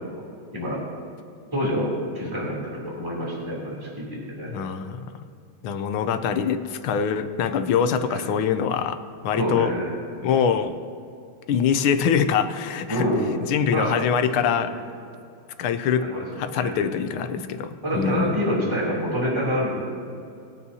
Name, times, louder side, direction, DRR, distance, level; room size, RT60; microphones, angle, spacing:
voice 1, 1.5-4.5 8.1-8.3 9.4-9.9 12.9-13.3 13.7-13.9 14.4-14.8 16.0-16.2 16.5-16.9 17.8-19.7, equal, 15° right, -5 dB, 2.9 m, -27 dB
voice 2, 4.5-5.0 5.6-9.0 9.2-9.7 10.2-10.8 11.5-13.1 13.5-14.7 15.6-16.1 16.4-18.4, left 7 dB, 80° left, 10 dB, 1.5 m, -24 dB
20.0 x 9.4 x 2.8 m, 2.5 s
omnidirectional pair, 2.2 m